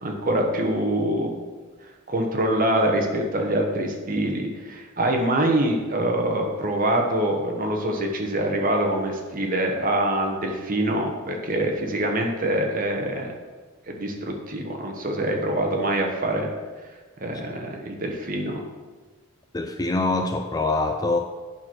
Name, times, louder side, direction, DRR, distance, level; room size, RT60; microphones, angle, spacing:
voice 1, 0.0-1.4 2.1-13.3 13.9-16.5 17.2-18.6, right 1 dB, 40° right, 2 dB, 1.1 m, -25 dB
voice 2, 19.5-21.2, left 2 dB, 15° left, 5 dB, 0.3 m, -24 dB
8.7 x 4.5 x 6.3 m, 1.4 s
head